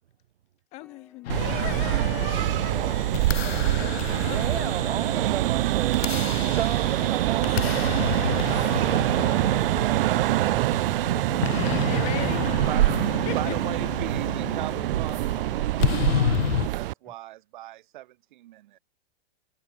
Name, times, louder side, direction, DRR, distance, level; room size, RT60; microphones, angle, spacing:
voice 1, 0.7-5.2 6.5-6.6 7.6-7.7 9.2-9.4 9.7-10.0 10.8-12.5 13.2-13.5, left 21 dB, 20° left, 0.8 m, -39 dB
sound 1, 0.8-1.5 1.8-2.9 3.3-17.1, left 3 dB, 5° left, 3.3 m, -54 dB
sound 2, 1.3-16.7, left 11 dB, 90° left, 2.6 m, -32 dB
sound 3, 1.3-16.9, right 16 dB, 70° right, 0.4 m, -25 dB
voice 2, 4.2-8.0 8.4-9.6 14.4-15.8, right 11 dB, 90° right, 5.7 m, -36 dB
voice 3, 13.2-18.8, right 15 dB, 55° right, 3.3 m, -38 dB
supercardioid pair, 170°, 30 cm